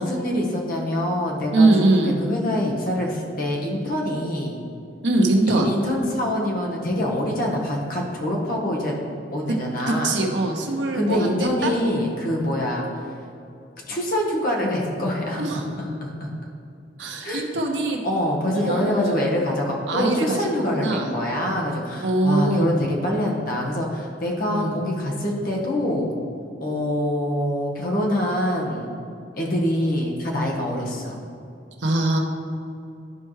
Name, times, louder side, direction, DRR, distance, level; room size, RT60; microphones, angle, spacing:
voice 1, 0.0-4.6 5.5-8.9 9.3-10.2 10.9-12.9 13.9-16.3 17.2-17.5 18.0-26.1 26.6-29.0 29.4-31.2, left 1 dB, 50° left, -2 dB, 1.3 m, -25 dB
voice 2, 1.5-2.2 5.0-5.7 9.9-11.7 15.4-15.7 17.0-18.0 18.5-19.2 19.9-21.1 22.0-22.7 24.5-24.8 31.8-32.2, right 2 dB, 90° right, 1 dB, 0.9 m, -22 dB
12.0 x 4.5 x 3.2 m, 2.5 s
head